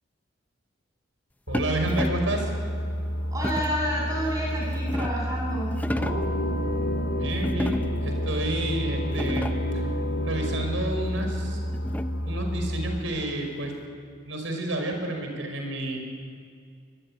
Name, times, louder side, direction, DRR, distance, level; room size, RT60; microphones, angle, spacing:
Boat Water vehicle, 1.5-13.0, equal, 90° left, 2.4 m, -30 dB
sound 1, 1.5-2.4 3.4-3.9 4.5-5.3 5.7-6.4 7.4-8.1 8.7-8.8 9.1-9.8 11.2-12.3, left 1 dB, 10° left, 0.7 m, -32 dB
voice 1, 1.5-2.5 7.1-9.6 10.2-11.6 12.2-13.7 14.3-16.0, right 1 dB, 80° right, 4 dB, 5.4 m, -30 dB
voice 2, 3.3-6.2, equal, 20° right, -3 dB, 7.8 m, -30 dB
sound 2, 6.0-11.2, left 1 dB, 70° left, 2.5 m, -33 dB
24.5 x 21.0 x 8.9 m, 2.2 s
head